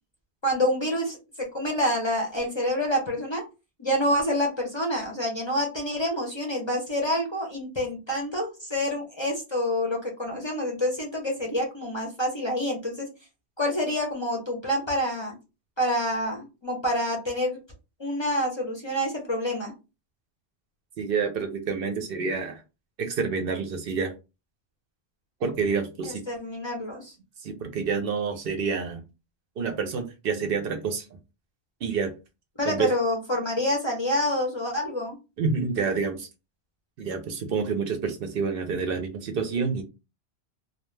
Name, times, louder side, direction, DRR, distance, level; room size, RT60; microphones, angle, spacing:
voice 1, 0.4-1.2 1.5-3.4 3.8-13.1 13.6-15.4 15.8-17.6 18.0-19.7 26.3-27.1 32.6-35.2, left 1 dB, 30° left, -1 dB, 0.6 m, -27 dB
voice 2, 21.0-22.6 23.0-24.1 25.4-26.2 27.4-29.0 29.6-31.1 31.8-32.1 32.6-32.9 35.4-36.3 37.0-39.8, right 5 dB, 65° right, 6 dB, 0.7 m, -28 dB
2.3 x 2.2 x 3.1 m, 0.28 s
omnidirectional pair, 1.1 m